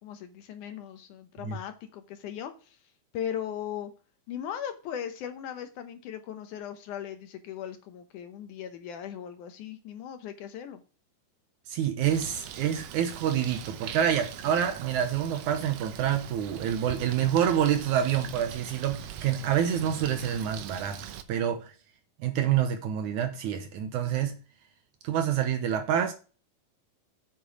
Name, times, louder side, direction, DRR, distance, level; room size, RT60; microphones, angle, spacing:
voice 1, 0.0-2.8 3.1-3.9 4.3-10.8, left 9 dB, 70° left, 2.2 m, -38 dB
voice 2, 11.7-21.0 21.3-21.7 22.2-24.4 25.0-26.1, right 9 dB, 70° right, 2.0 m, -27 dB
Bird, 12.0-21.2, right 9 dB, 90° right, 1.4 m, -42 dB
8.5 x 6.2 x 4.9 m
omnidirectional pair, 4.0 m